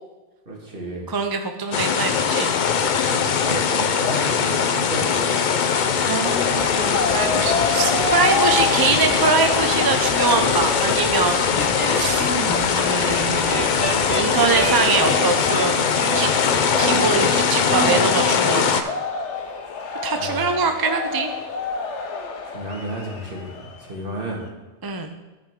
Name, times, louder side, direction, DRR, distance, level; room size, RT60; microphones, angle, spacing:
voice 1, 0.5-1.1 2.8-5.3 20.1-20.7 22.4-24.4, right 1 dB, 50° right, -2 dB, 2.1 m, -32 dB
voice 2, 1.1-2.5 6.1-11.5 11.9-12.3 12.7-13.8 14.1-15.8 16.1-16.3 16.8-19.0 20.0-21.3 24.8-25.2, right 4 dB, 30° right, 5 dB, 0.4 m, -23 dB
sound 1, 1.7-18.8, left 6 dB, 50° left, 0.6 m, -21 dB
sound 2, 6.2-24.0, left 4 dB, 80° left, 1.2 m, -30 dB
sound 3, 11.5-13.1 13.3-18.2, right 1 dB, 20° left, 2.5 m, -28 dB
13.5 x 5.0 x 3.7 m, 1.2 s
omnidirectional pair, 1.2 m